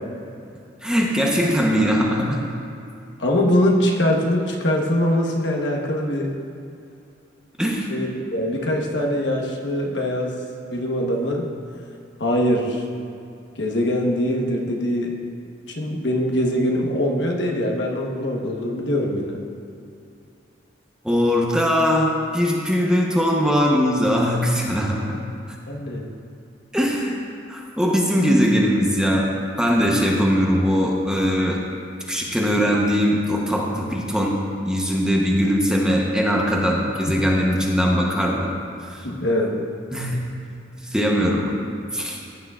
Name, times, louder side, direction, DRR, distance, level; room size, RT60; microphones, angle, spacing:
voice 1, 0.8-2.4 7.6-7.9 21.0-25.2 26.7-27.2 27.5-29.3 29.6-31.6 32.1-34.4 34.7-38.5 38.9-39.0 39.9-40.2 40.9-41.6 41.9-42.2, equal, 5° right, -2 dB, 0.9 m, -20 dB
voice 2, 3.2-6.4 7.9-10.4 10.7-11.5 12.2-12.8 13.6-15.2 15.7-19.4 25.7-26.1 37.1-37.2 39.0-39.6, left 1 dB, 75° left, 0 dB, 1.1 m, -22 dB
15.5 x 9.3 x 2.4 m, 2.6 s
head